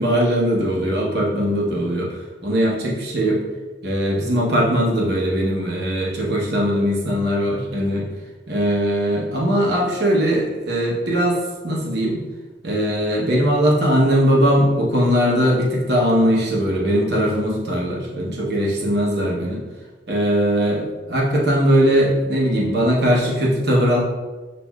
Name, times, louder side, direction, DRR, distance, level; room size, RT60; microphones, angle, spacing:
voice 1, 0.0-3.4 3.8-8.1 8.5-12.2 12.6-19.6 20.1-24.0, equal, 60° right, -3 dB, 0.9 m, -20 dB
6.2 x 2.6 x 2.3 m, 1.2 s
head